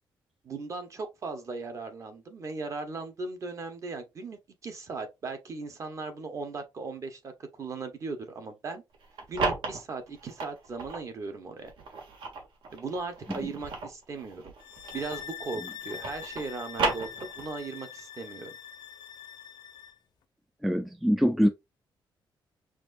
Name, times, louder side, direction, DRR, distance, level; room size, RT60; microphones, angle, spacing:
voice 1, 0.4-8.8 9.3-11.7 12.7-14.5 14.9-18.5, right 3 dB, 35° right, 1.0 m, -38 dB
sound 1, 8.9-11.1 11.6-15.4 15.7-17.7, right 3 dB, 70° right, 1.4 m, -34 dB
sound 2, 14.6-20.0, left 9 dB, 60° left, 0.5 m, -44 dB
voice 2, 20.6-21.5, equal, ahead, 0.3 m, -23 dB
6.0 x 2.5 x 2.5 m
cardioid pair, 160°, 9 cm